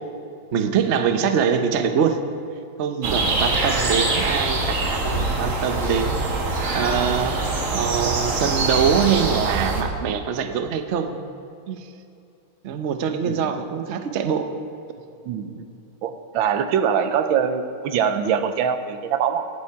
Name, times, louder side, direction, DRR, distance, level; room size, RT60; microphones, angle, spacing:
voice 1, 0.5-2.2 2.8-7.3 7.7-11.3 11.7-11.9 12.6-14.5 15.6-15.7, right 7 dB, 85° right, 7 dB, 0.6 m, -24 dB
sound 1, 3.0-9.8, right 2 dB, 40° right, 1.5 m, -24 dB
voice 2, 3.0-3.4 13.2-13.5 15.2-15.6 16.0-19.5, right 7 dB, 70° right, 9 dB, 1.4 m, -23 dB
19.0 x 8.6 x 4.7 m, 2.6 s
omnidirectional pair, 2.4 m